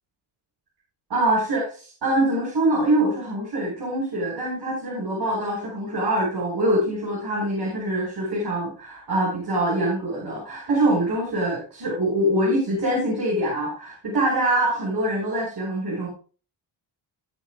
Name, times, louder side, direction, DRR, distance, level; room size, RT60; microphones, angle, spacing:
voice 1, 1.1-16.1, right 1 dB, 50° right, -5 dB, 5.6 m, -24 dB
18.5 x 8.7 x 2.4 m, 0.37 s
wide cardioid pair, 145°, 49 cm